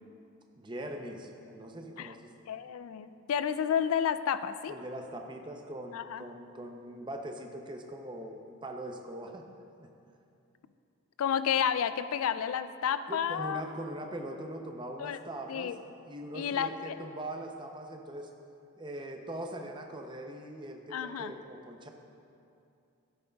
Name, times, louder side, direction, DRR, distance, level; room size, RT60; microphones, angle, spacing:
voice 1, 0.6-2.3 4.7-9.5 9.8-9.9 13.1-15.7 16.1-18.3 18.8-21.9, right 1 dB, 20° right, 3 dB, 0.6 m, -41 dB
voice 2, 2.5-4.7 5.9-6.2 11.2-13.6 15.0-15.2 15.5-15.8 16.3-16.9 20.9-21.3, left 8 dB, 75° left, 13 dB, 0.3 m, -31 dB
12.5 x 10.0 x 2.3 m, 2.6 s
head